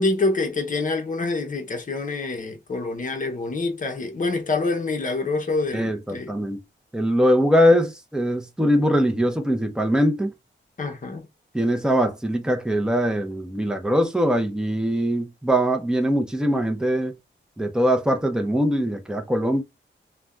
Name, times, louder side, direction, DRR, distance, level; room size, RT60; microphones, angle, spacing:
voice 1, 0.0-6.3 10.8-11.3, left 3 dB, 40° left, 0.7 m, -26 dB
voice 2, 5.7-6.6 6.9-10.3 11.5-17.1 17.6-19.6, equal, 5° right, 0.6 m, -22 dB
2.5 x 2.2 x 3.2 m
wide cardioid pair, 105°, 20 cm